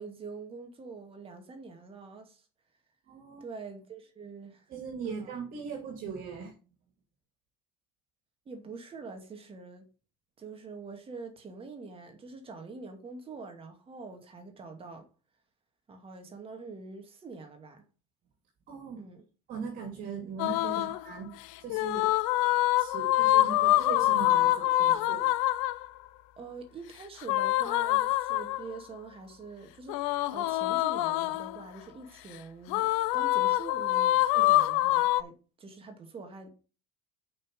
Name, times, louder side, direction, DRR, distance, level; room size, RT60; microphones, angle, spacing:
voice 1, 0.0-2.5 3.4-4.7 5.0-5.3 8.5-9.9 10.4-15.1 15.9-17.9 19.0-19.2 20.8-20.9 26.4-36.5, right 4 dB, 30° right, 2.3 m, -45 dB
voice 2, 3.1-3.4 4.7-6.5 18.7-19.0 19.5-22.1 22.8-25.3 34.3-34.4, right 6 dB, 55° right, 2.9 m, -39 dB
sound 1, 20.4-21.0 21.7-25.9 27.2-28.8 29.9-31.6 32.7-35.2, left 16 dB, 75° left, 0.5 m, -25 dB
6.6 x 5.7 x 4.9 m
supercardioid pair, 90°, 17 cm